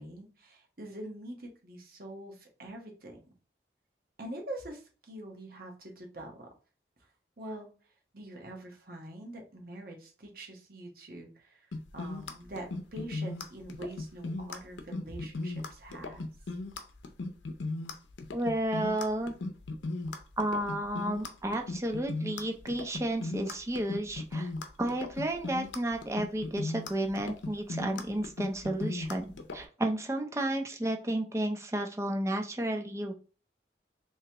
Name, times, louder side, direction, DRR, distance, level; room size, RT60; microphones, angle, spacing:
voice 1, 0.0-3.2 4.2-6.5 7.0-7.1 7.4-7.7 8.1-16.3, right 1 dB, 55° right, 1 dB, 1.1 m, -44 dB
sound 1, 11.7-29.6, left 2 dB, 90° left, 0.6 m, -37 dB
voice 2, 18.3-19.3 20.4-24.5 24.8-33.1, right 1 dB, 15° right, 4 dB, 0.5 m, -32 dB
3.4 x 2.9 x 2.9 m, 0.37 s
head